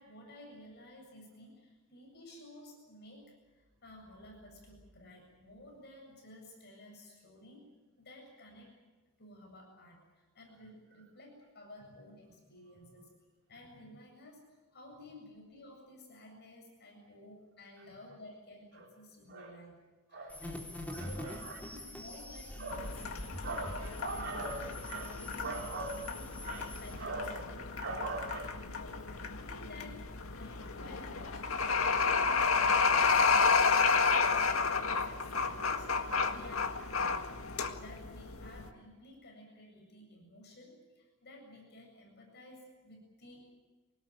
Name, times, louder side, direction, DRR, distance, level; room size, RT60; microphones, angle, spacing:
voice 1, 0.0-7.7 8.0-8.8 9.2-13.1 13.5-19.7 20.1-20.6 21.0-22.9 23.2-23.8 24.1-24.8 25.1-25.5 26.1-26.2 26.8-28.0 28.6-34.2 34.6-37.4 37.8-43.5, left 1 dB, 55° left, 1 dB, 7.7 m, -54 dB
voice 2, 20.1-20.5 20.9-21.9 22.6-23.0 23.4-26.2 26.4-27.5 27.8-28.5, right 3 dB, 55° right, -2 dB, 3.9 m, -41 dB
sound 1, 20.3-27.0, left 1 dB, 10° left, 3.8 m, -45 dB
sound 2, 22.7-38.7, left 5 dB, 85° left, 1.8 m, -31 dB
25.0 x 19.0 x 9.1 m, 1.2 s
head